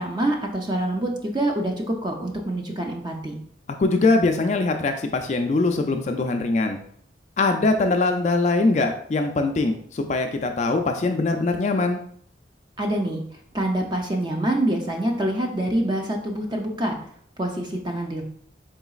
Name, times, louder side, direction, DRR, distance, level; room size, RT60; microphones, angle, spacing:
voice 1, 0.0-3.3 12.8-13.2 13.5-16.9 17.4-18.2, right 1 dB, 25° right, 2 dB, 0.5 m, -26 dB
voice 2, 3.8-6.8 7.4-12.0, left 3 dB, 40° left, 5 dB, 0.3 m, -22 dB
3.9 x 3.8 x 2.3 m, 0.62 s
head